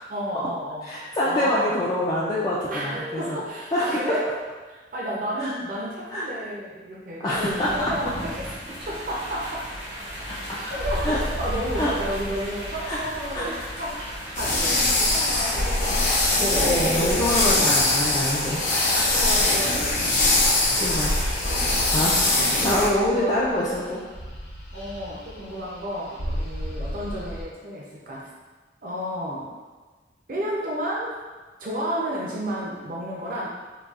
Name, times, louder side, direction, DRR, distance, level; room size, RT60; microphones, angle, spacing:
voice 1, 0.1-1.8 2.7-4.3 4.9-9.6 10.7-14.0 14.3-17.8 18.8-20.1 21.4-21.8 22.2-23.7 24.7-28.3 28.8-29.5 30.3-31.2 31.6-33.5, equal, 50° right, -5 dB, 0.6 m, -32 dB
voice 2, 0.8-3.4 3.7-3.8 5.4-5.5 6.1-6.2 7.2-7.7 10.3-10.4 11.0-11.2 11.8-11.9 12.9-13.0 13.3-13.4 16.4-19.2 19.6-20.0 20.8-21.4 21.9-22.2 22.6-24.0, left 1 dB, 20° left, -7 dB, 0.3 m, -26 dB
sound 1, 7.3-21.7, equal, 80° right, 1.3 m, -37 dB
sound 2, 10.4-15.2 15.5-19.8 20.1-20.6 20.9-27.5, equal, 75° left, 0.8 m, -34 dB
sound 3, 14.3-22.9, left 2 dB, 45° left, 0.7 m, -22 dB
3.9 x 2.3 x 2.4 m, 1.3 s
head